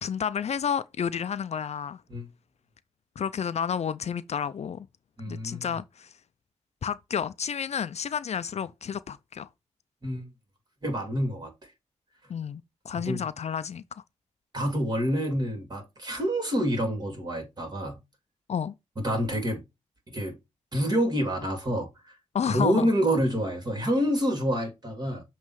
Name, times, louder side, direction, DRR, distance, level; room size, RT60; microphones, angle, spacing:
voice 1, 0.0-2.0 3.2-4.9 5.3-6.1 6.8-9.5 12.3-14.0 18.5-18.7 22.3-22.9, left 7 dB, 65° left, 0.4 m, -31 dB
voice 2, 5.2-5.7 10.0-10.3 10.8-11.5 12.9-13.3 14.5-18.0 19.0-19.6 20.1-20.4 20.7-21.9 22.5-25.2, equal, 35° right, 2.8 m, -27 dB
7.3 x 3.1 x 4.7 m
cardioid pair, 65°, 12 cm